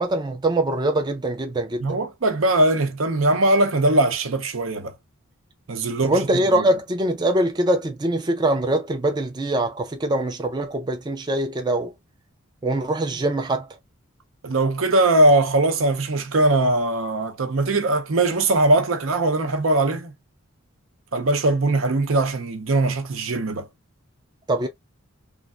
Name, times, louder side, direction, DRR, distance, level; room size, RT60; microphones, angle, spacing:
voice 1, 0.0-1.8 6.0-11.9 12.6-13.7 24.5-24.7, right 1 dB, 20° right, 0.4 m, -23 dB
voice 2, 1.8-4.9 5.7-6.2 6.5-6.7 14.4-20.1 21.1-23.7, right 2 dB, 70° right, 0.7 m, -20 dB
3.1 x 2.5 x 2.4 m
head